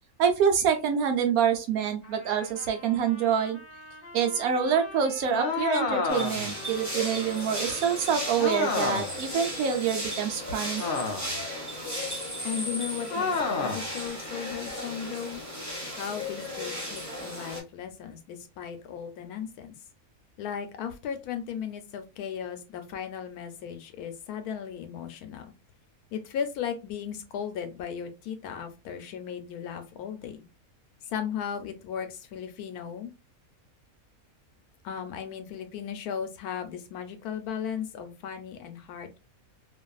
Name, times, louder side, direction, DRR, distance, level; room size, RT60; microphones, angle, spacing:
voice 1, 0.2-3.6 4.1-10.8, right 7 dB, 75° right, 5 dB, 1.1 m, -26 dB
Trumpet, 2.0-9.8, left 1 dB, 45° left, 0.9 m, -47 dB
sound 1, 5.3-6.6 8.4-9.2 10.8-11.4 13.1-13.9, left 4 dB, 65° left, 0.5 m, -29 dB
sound 2, 6.1-17.6, equal, 15° right, 0.6 m, -35 dB
voice 2, 12.4-15.4 16.0-19.7 20.4-25.5 26.1-30.4 31.1-33.1 34.8-39.2, left 8 dB, 85° left, 8 dB, 1.1 m, -36 dB
2.6 x 2.5 x 2.3 m, 0.27 s
omnidirectional pair, 1.6 m